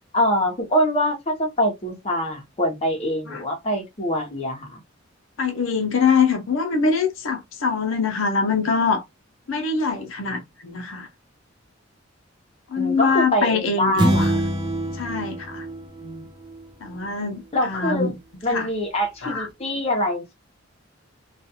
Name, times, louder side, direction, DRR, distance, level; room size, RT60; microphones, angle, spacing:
voice 1, 0.1-4.8 12.8-14.4 16.0-16.2 17.5-18.1 18.4-20.3, equal, 30° left, 0.9 m, -24 dB
voice 2, 5.4-9.0 9.5-11.1 12.7-14.3 14.9-15.7 16.8-18.2 18.5-18.7 19.2-19.5, left 5 dB, 80° left, 0.7 m, -23 dB
sound 1, 14.0-16.6, right 1 dB, 25° right, 0.5 m, -24 dB
2.4 x 2.3 x 2.8 m
head